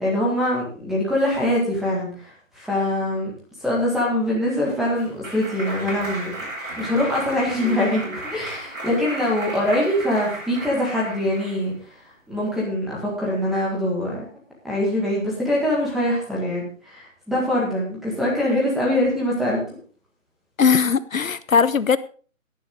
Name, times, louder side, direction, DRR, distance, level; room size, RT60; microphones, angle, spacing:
voice 1, 0.0-3.3 3.6-6.5 6.8-11.7 12.3-14.2 14.6-19.6, left 1 dB, ahead, 1.7 m, -23 dB
Clapping, 4.4-11.7, right 1 dB, 75° right, 7.1 m, -34 dB
voice 2, 20.6-22.0, left 6 dB, 80° left, 0.9 m, -19 dB
14.0 x 10.5 x 3.7 m
figure-of-eight pair, 160°, 40 cm